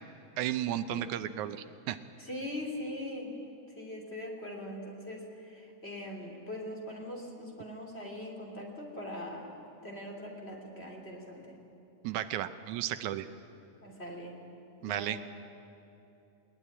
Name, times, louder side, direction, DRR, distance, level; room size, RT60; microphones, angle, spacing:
voice 1, 0.4-2.0 12.0-13.3 14.8-15.2, right 12 dB, 85° right, 11 dB, 2.2 m, -34 dB
voice 2, 2.2-3.3 3.7-11.6 13.8-14.4 14.8-15.2, left 1 dB, 20° left, 0 dB, 3.2 m, -41 dB
21.0 x 20.5 x 9.9 m, 2.8 s
omnidirectional pair, 3.4 m